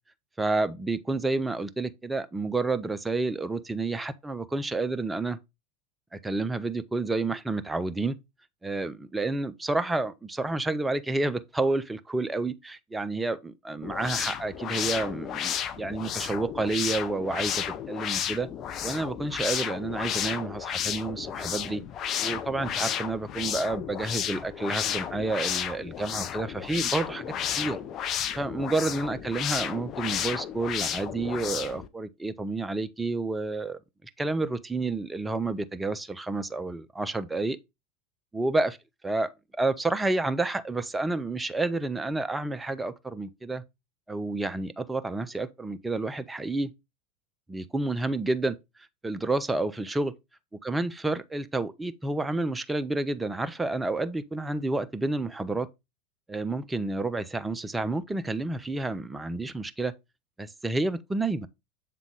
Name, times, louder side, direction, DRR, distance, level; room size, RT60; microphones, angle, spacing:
voice 1, 0.4-5.4 6.1-8.2 8.6-18.5 18.8-21.8 22.2-27.8 28.4-33.8 34.2-37.6 38.3-38.8 39.0-43.6 44.1-46.7 47.5-48.6 49.0-50.1 50.6-55.7 56.3-59.9 60.4-61.5, right 2 dB, 10° right, 0.5 m, -30 dB
sound 1, 13.8-31.9, left 9 dB, 35° left, 0.5 m, -32 dB
7.1 x 3.8 x 3.5 m
figure-of-eight pair, 85°, 0 cm